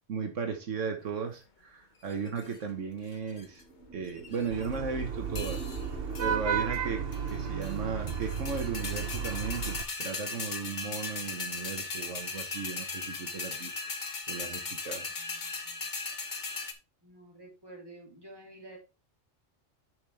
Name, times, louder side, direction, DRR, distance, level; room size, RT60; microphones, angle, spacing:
voice 1, 0.1-3.6 3.9-5.7 6.2-13.7 14.3-15.1, right 5 dB, 80° right, 1.6 m, -36 dB
sound 1, 2.1-2.6 3.1-3.6 4.1-4.7 5.4-5.9 6.1-6.3 6.7-6.8 7.1-7.8 8.1-16.7, left 4 dB, 40° left, 1.2 m, -38 dB
sound 2, 3.4-9.4, right 2 dB, 85° left, 4.3 m, -44 dB
Vehicle horn car horn honking / Traffic noise roadway noise, 4.5-9.8, right 7 dB, 55° right, 1.1 m, -34 dB
voice 2, 15.2-15.9 17.0-18.8, right 1 dB, 20° right, 3.2 m, -51 dB
9.5 x 6.0 x 3.4 m
omnidirectional pair, 1.3 m